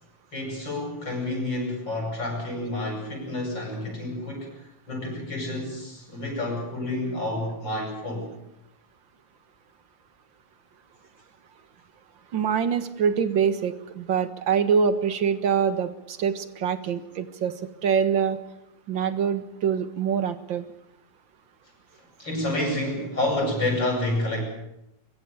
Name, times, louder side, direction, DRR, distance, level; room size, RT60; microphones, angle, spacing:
voice 1, 0.3-4.5 4.9-8.3 22.2-24.4, left 1 dB, 75° left, 2 dB, 8.8 m, -29 dB
voice 2, 12.3-17.5 17.8-18.4 18.9-20.6, right 7 dB, 80° right, 10 dB, 2.1 m, -24 dB
23.5 x 23.0 x 6.9 m, 0.86 s
omnidirectional pair, 2.1 m